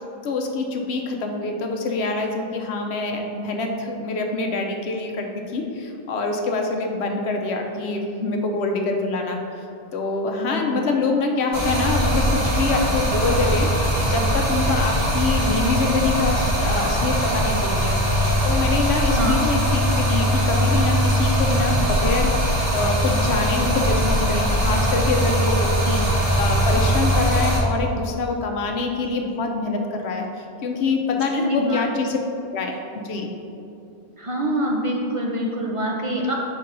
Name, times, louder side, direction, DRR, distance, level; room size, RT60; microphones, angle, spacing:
voice 1, 0.2-9.4 9.9-13.7 14.0-32.2 32.5-32.8 33.0-33.3, left 3 dB, 75° left, 2 dB, 0.9 m, -25 dB
voice 2, 10.4-10.9 19.1-19.5 31.4-31.9 34.2-36.3, equal, 40° right, -1 dB, 0.5 m, -25 dB
Stream, 11.5-27.6, equal, 80° right, 1.7 m, -21 dB
4.5 x 3.8 x 5.4 m, 2.6 s
omnidirectional pair, 1.1 m